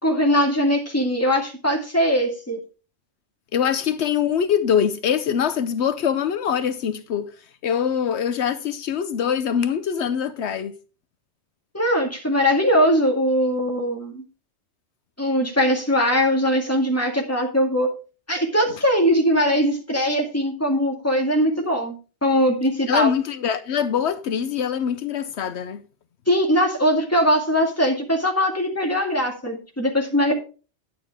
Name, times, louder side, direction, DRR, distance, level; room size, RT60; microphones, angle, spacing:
voice 1, 0.0-2.6 11.7-14.2 15.2-17.9 18.3-22.0 22.2-23.1 26.3-30.3, equal, 15° left, 2.3 m, -21 dB
voice 2, 3.5-7.3 7.6-10.8 22.9-25.8, left 8 dB, 80° left, 1.0 m, -23 dB
10.5 x 8.8 x 3.4 m
omnidirectional pair, 1.1 m